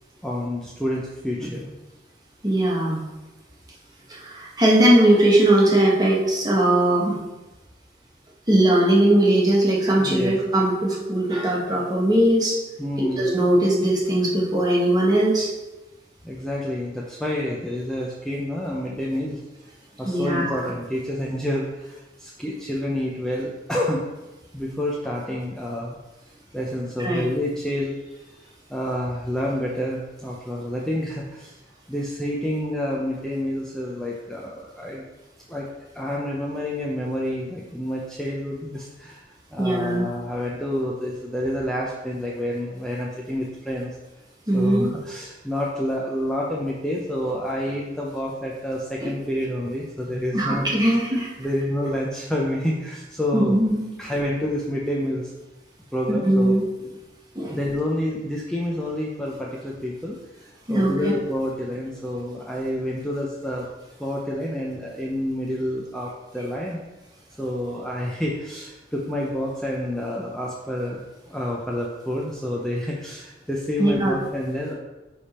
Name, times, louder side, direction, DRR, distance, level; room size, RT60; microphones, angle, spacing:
voice 1, 0.2-1.7 10.0-10.3 12.8-13.3 16.2-19.4 20.0-24.0 24.5-26.0 26.5-28.3 28.7-31.6 31.9-35.0 35.5-35.7 35.9-39.3 39.5-43.9 44.5-50.6 51.1-53.6 54.0-55.3 55.9-56.5 57.5-60.2 60.7-63.7 64.0-66.8 67.4-74.7, left 1 dB, 5° left, -3 dB, 0.6 m, -28 dB
voice 2, 2.4-3.0 4.1-7.2 8.5-12.6 13.0-15.5 20.0-20.7 27.0-27.2 39.6-40.1 44.5-44.9 49.0-49.1 50.3-51.3 53.3-53.8 56.1-56.6 57.3-57.6 60.7-61.1 73.8-74.1, right 1 dB, 20° right, -3 dB, 1.4 m, -20 dB
10.0 x 3.5 x 4.3 m, 1.1 s
head